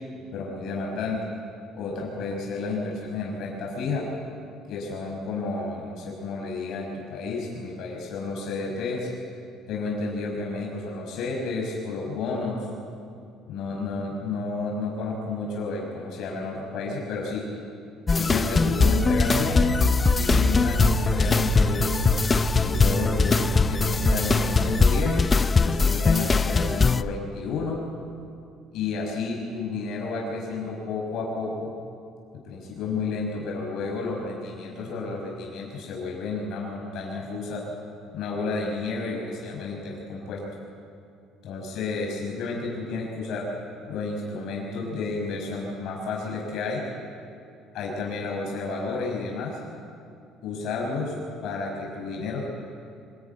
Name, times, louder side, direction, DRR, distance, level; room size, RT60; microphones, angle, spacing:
voice 1, 0.3-1.2 1.8-4.1 4.7-9.1 9.7-12.7 13.5-17.4 18.2-19.7 20.1-21.9 22.5-25.2 25.6-27.8 28.7-31.7 32.3-37.6 38.1-40.4 41.4-43.5 43.9-46.8 47.7-49.6 50.4-51.1 51.4-52.4, left 3 dB, 60° left, -2 dB, 5.6 m, -31 dB
sound 1, 18.1-27.0, left 4 dB, 20° left, 0.5 m, -21 dB
sound 2, 18.8-24.9, right 4 dB, 75° right, 3.3 m, -30 dB
26.5 x 19.0 x 9.7 m, 2.5 s
cardioid pair, 160°, 0 cm